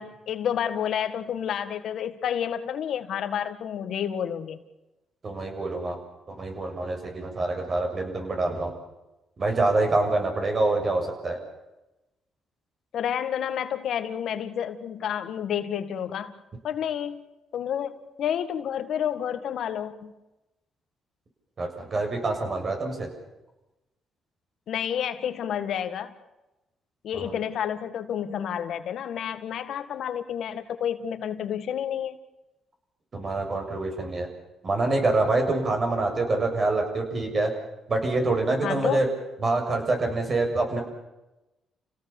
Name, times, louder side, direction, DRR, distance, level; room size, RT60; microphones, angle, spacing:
voice 1, 0.0-4.6 12.9-16.3 16.6-17.2 17.5-20.1 24.7-26.1 27.0-32.2 38.6-39.1, left 9 dB, 70° left, 9 dB, 1.9 m, -30 dB
voice 2, 5.2-6.0 6.3-8.7 9.4-11.4 21.6-23.1 27.1-27.3 33.1-34.3 34.6-37.5 37.9-39.1 39.4-40.8, right 2 dB, 40° right, 4 dB, 7.3 m, -26 dB
29.5 x 17.5 x 7.3 m, 0.99 s
cardioid pair, 90°, 0 cm